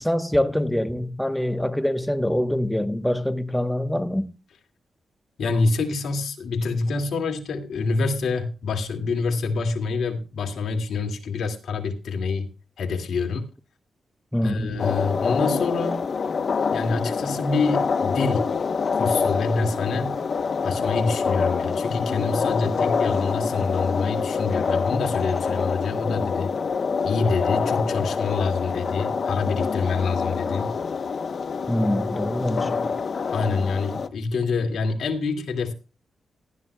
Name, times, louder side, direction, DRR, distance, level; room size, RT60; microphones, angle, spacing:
voice 1, 0.0-4.3 14.3-14.8 31.7-32.9, left 1 dB, 5° left, 0.9 m, -25 dB
voice 2, 5.4-12.5 12.8-13.4 14.4-16.0 16.7-18.5 18.9-20.2 20.6-26.5 27.0-30.7 33.3-35.7, left 4 dB, 80° left, 2.1 m, -26 dB
sound 1, 14.8-34.1, left 5 dB, 60° left, 0.8 m, -26 dB
18.0 x 12.0 x 2.2 m
cardioid pair, 65°, 0 cm